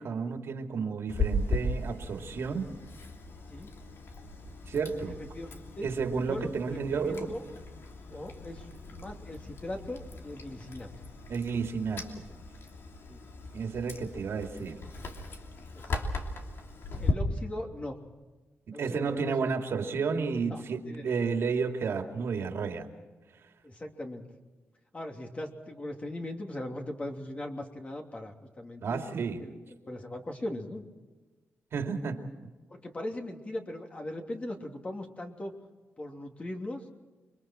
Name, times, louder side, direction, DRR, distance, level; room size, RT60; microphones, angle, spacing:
voice 1, 0.0-2.6 4.7-5.2 5.8-7.3 11.3-12.0 13.5-14.8 18.7-22.9 28.8-29.4 31.7-32.3, right 5 dB, 70° right, 4 dB, 2.6 m, -32 dB
Chewing mastication, 1.1-17.1, left 2 dB, 60° left, 3.1 m, -37 dB
voice 2, 5.0-5.9 6.2-7.4 8.1-10.9 13.1-13.2 15.7-16.0 17.0-18.0 18.7-19.4 20.5-21.2 23.6-24.2 24.9-29.0 29.4-29.5 29.8-30.8 32.7-35.5 36.0-36.8, left 1 dB, 30° left, 2 dB, 3.0 m, -39 dB
29.0 x 23.5 x 4.5 m, 1.2 s
wide cardioid pair, 110°, 4 cm